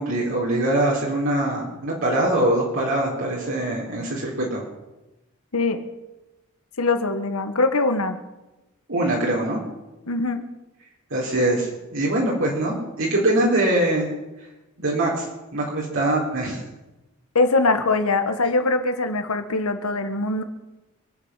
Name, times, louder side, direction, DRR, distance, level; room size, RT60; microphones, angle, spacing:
voice 1, 0.0-4.6 8.9-9.6 11.1-14.1 14.8-15.3 15.5-16.6, right 1 dB, 60° right, -4 dB, 3.8 m, -23 dB
voice 2, 6.8-8.2 10.1-10.4 17.4-20.4, left 3 dB, 80° left, 8 dB, 1.6 m, -22 dB
26.5 x 8.9 x 5.8 m, 1.0 s
head